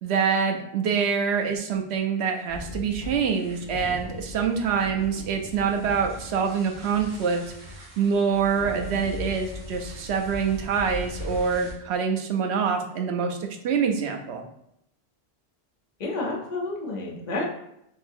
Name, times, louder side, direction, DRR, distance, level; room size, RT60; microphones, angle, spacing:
voice 1, 0.0-7.4 8.0-13.4 13.6-14.4, right 6 dB, 85° right, 4 dB, 0.9 m, -25 dB
sound 1, 2.5-11.7, left 1 dB, 65° right, 1.5 m, -39 dB
voice 2, 16.0-17.5, left 2 dB, 45° left, -1 dB, 0.8 m, -30 dB
3.7 x 2.7 x 2.6 m, 0.77 s
omnidirectional pair, 1.1 m